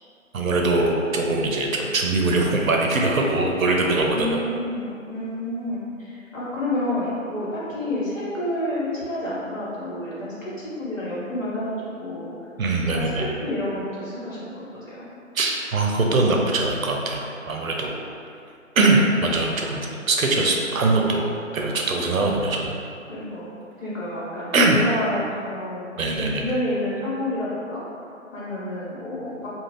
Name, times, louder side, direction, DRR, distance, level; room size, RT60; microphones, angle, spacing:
voice 1, 0.3-4.4 12.6-13.3 15.3-17.9 18.8-21.3 21.5-22.8 24.5-24.8 26.0-26.6, right 2 dB, 85° right, 0 dB, 0.6 m, -22 dB
voice 2, 4.1-12.3 12.9-15.0 23.1-23.5 23.8-25.9 26.2-27.8 28.3-29.5, left 1 dB, 70° left, -8 dB, 1.3 m, -29 dB
2.5 x 2.4 x 3.2 m, 2.5 s
figure-of-eight pair, 160°, 40 cm